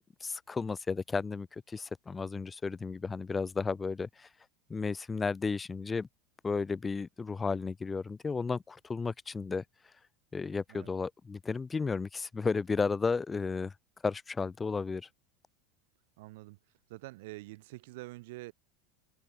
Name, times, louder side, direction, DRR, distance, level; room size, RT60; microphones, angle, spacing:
voice 1, 0.2-4.3 4.7-6.1 6.4-9.6 10.3-13.7 14.0-15.1, left 4 dB, 15° left, 0.6 m, -33 dB
voice 2, 16.2-16.6 16.9-18.5, right 21 dB, 70° right, 2.3 m, -46 dB
supercardioid pair, 155°, 0 cm